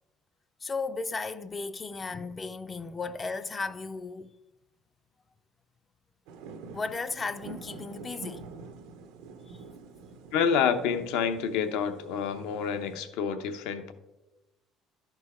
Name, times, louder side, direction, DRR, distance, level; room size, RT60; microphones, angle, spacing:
voice 1, 0.6-4.3 6.7-8.5 9.5-9.6, left 4 dB, 25° left, 0.3 m, -35 dB
sound 1, 6.3-13.0, right 3 dB, 85° right, 0.7 m, -46 dB
voice 2, 10.3-13.9, left 7 dB, 85° left, 0.7 m, -28 dB
11.5 x 4.6 x 4.2 m
cardioid pair, 130°, 0 cm